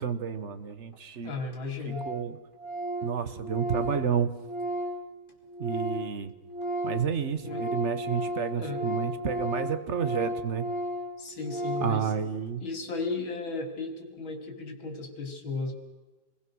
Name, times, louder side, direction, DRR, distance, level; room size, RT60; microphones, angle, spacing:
voice 1, 0.0-1.3 1.8-2.4 3.0-4.3 5.6-6.3 6.8-10.7 11.8-12.6, right 7 dB, 40° right, 11 dB, 1.3 m, -30 dB
Organ, 0.9-1.0 1.2-1.3 1.5-1.6 1.9-2.3 2.6-6.2 6.4-12.1, equal, 25° left, 3.1 m, -34 dB
voice 2, 1.2-2.1 7.4-7.7 8.6-8.8 11.2-12.1 12.6-15.7, left 4 dB, 85° left, 4 dB, 3.6 m, -35 dB
27.5 x 21.5 x 6.3 m, 1.2 s
omnidirectional pair, 2.1 m